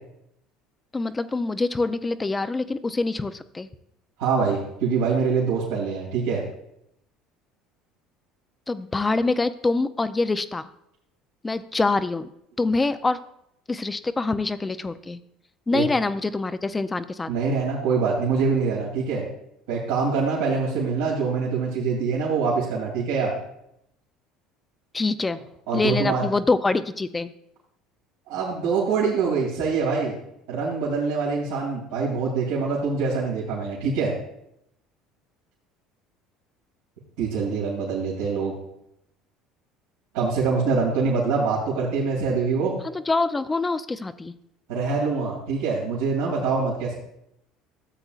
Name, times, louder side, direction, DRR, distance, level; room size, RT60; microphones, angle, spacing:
voice 1, 0.9-3.7 8.7-10.7 11.4-12.3 12.6-13.2 13.7-15.2 15.7-17.3 24.9-25.4 25.7-27.3 42.9-44.3, left 3 dB, 20° left, 12 dB, 0.5 m, -25 dB
voice 2, 4.2-6.4 15.7-15.9 17.3-19.3 19.7-23.3 25.7-26.2 28.3-30.1 30.5-34.1 37.2-38.5 40.1-42.8 44.7-46.9, right 5 dB, 85° right, -6 dB, 2.5 m, -24 dB
13.0 x 7.7 x 2.5 m, 0.78 s
supercardioid pair, 95°, 0 cm